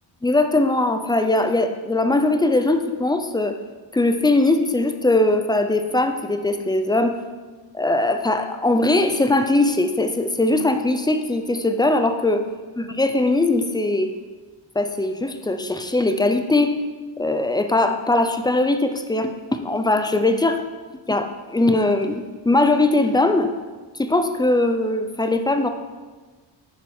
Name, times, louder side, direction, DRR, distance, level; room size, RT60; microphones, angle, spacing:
voice 1, 0.2-3.5 3.9-7.1 7.7-12.4 12.8-14.1 14.8-16.7 17.2-20.6 21.1-23.5 24.0-25.7, left 2 dB, 10° left, 7 dB, 0.5 m, -20 dB
10.0 x 7.3 x 4.4 m, 1.3 s
wide cardioid pair, 165°, 46 cm